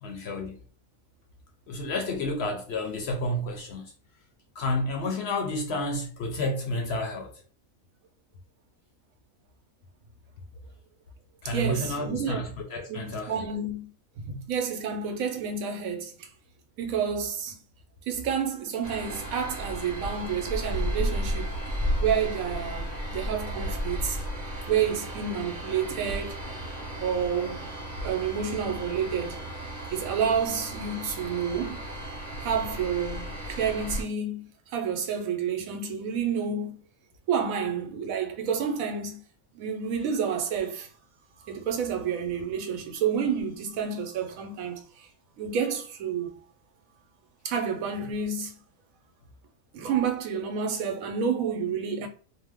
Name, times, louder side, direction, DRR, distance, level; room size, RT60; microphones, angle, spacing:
voice 1, 0.0-0.6 1.7-3.9 4.6-7.3 11.4-13.5, left 1 dB, 60° left, 0.8 m, -30 dB
voice 2, 11.5-12.4 12.9-13.9 14.2-16.3 16.8-17.6 18.1-21.5 22.0-24.2 24.7-26.4 27.0-27.6 28.0-29.5 29.9-31.8 32.4-36.8 37.3-39.2 39.5-40.9 41.4-45.1 45.4-46.3 47.4-48.6 49.7-52.1, right 6 dB, 80° right, 1.0 m, -29 dB
sound 1, 18.8-34.0, equal, 40° right, 1.0 m, -34 dB
2.7 x 2.0 x 3.4 m
omnidirectional pair, 1.4 m